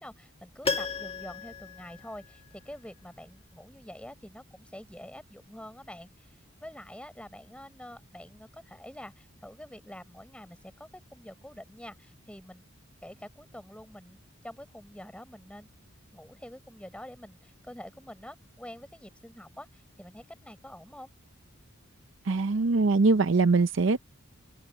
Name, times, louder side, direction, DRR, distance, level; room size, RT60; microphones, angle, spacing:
voice 1, 0.0-12.6 13.0-15.7 16.1-21.1, left 1 dB, 5° left, 5.1 m, -47 dB
Piano, 0.6-2.7 3.0-3.1, left 4 dB, 30° left, 1.8 m, -35 dB
voice 2, 22.3-24.1, right 3 dB, 65° right, 0.6 m, -23 dB
head